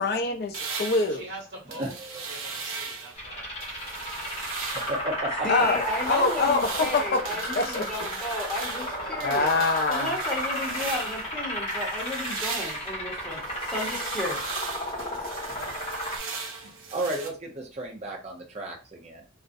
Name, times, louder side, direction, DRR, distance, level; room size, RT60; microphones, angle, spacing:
voice 1, 0.0-1.3 5.5-7.8 9.2-10.2, left 3 dB, 50° left, 0.4 m, -25 dB
sound 1, 0.5-3.2 3.6-5.1 5.4-11.3 11.7-17.3, right 4 dB, 85° right, 0.6 m, -38 dB
voice 2, 1.1-2.0 2.3-4.4, right 1 dB, 60° right, 1.2 m, -44 dB
voice 3, 1.8-2.2 4.9-5.7 16.9-19.2, right 1 dB, 35° right, 0.5 m, -33 dB
sound 2, 3.1-16.2, equal, 30° left, 0.9 m, -33 dB
voice 4, 5.4-9.6 9.9-13.4 13.7-14.6, left 1 dB, 5° left, 0.7 m, -34 dB
2.4 x 2.1 x 2.5 m
head